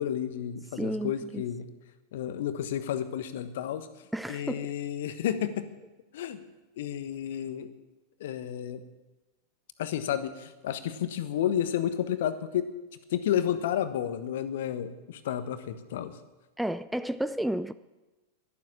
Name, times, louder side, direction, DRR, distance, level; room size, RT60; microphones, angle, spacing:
voice 1, 0.0-1.7 2.1-3.9 4.3-5.7 6.1-6.4 6.8-7.7 8.2-8.8 9.8-12.7 13.1-16.1, left 10 dB, 55° left, 11 dB, 1.2 m, -31 dB
voice 2, 0.7-1.4 4.1-4.7 16.6-17.7, right 1 dB, ahead, 14 dB, 0.4 m, -32 dB
12.0 x 12.0 x 8.6 m, 1.1 s
figure-of-eight pair, 90°, 0 cm